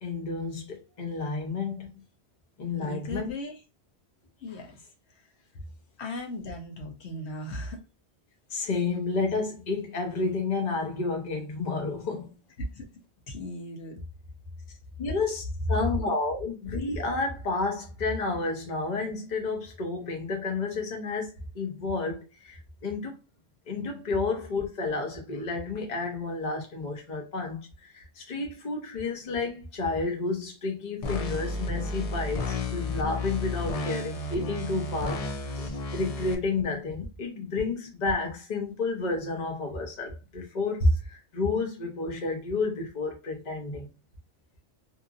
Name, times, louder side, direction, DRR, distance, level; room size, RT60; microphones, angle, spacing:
voice 1, 0.0-2.0 2.6-3.3 8.5-12.3 15.0-23.2 23.7-43.9, left 3 dB, 45° left, 0.9 m, -31 dB
voice 2, 2.8-3.6 4.4-5.3 6.0-7.8 12.7-13.0 13.3-14.0, left 1 dB, 80° left, 1.0 m, -38 dB
sound 1, 31.0-36.4, left 2 dB, 60° left, 0.4 m, -32 dB
2.9 x 2.5 x 2.4 m
omnidirectional pair, 1.1 m